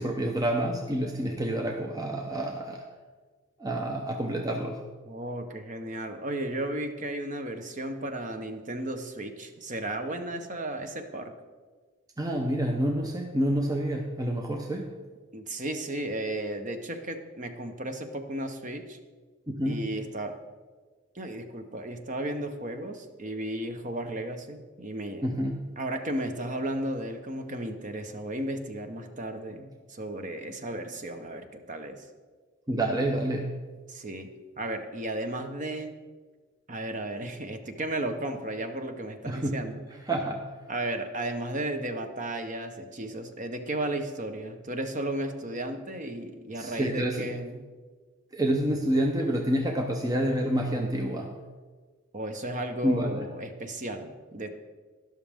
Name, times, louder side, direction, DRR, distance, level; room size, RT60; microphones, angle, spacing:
voice 1, 0.0-2.9 3.6-4.8 12.2-14.9 19.6-19.9 25.2-25.8 32.7-33.6 39.3-39.5 40.1-40.5 46.6-47.3 48.3-51.4 52.8-53.2, right 1 dB, 20° right, 3 dB, 0.7 m, -28 dB
voice 2, 5.0-11.3 15.3-19.0 19.6-20.4 21.1-25.3 25.8-32.1 33.9-35.9 36.7-39.8 40.7-47.6 52.1-54.5, right 1 dB, 40° right, 6 dB, 0.9 m, -34 dB
12.5 x 11.5 x 3.6 m, 1.4 s
head